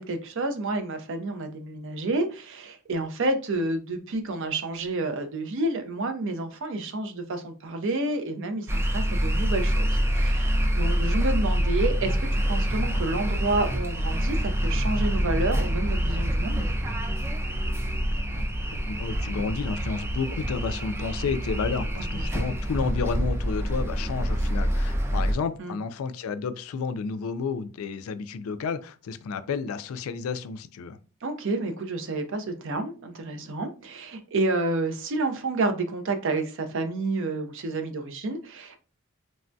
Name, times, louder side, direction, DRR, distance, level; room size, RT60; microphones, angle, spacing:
voice 1, 0.0-9.9 10.2-16.7 25.6-25.7 31.2-38.8, right 2 dB, 65° right, 0.5 m, -29 dB
sound 1, 8.7-25.3, equal, 10° right, 0.3 m, -26 dB
voice 2, 18.8-31.0, left 5 dB, 80° left, 0.3 m, -31 dB
3.3 x 2.2 x 2.6 m
head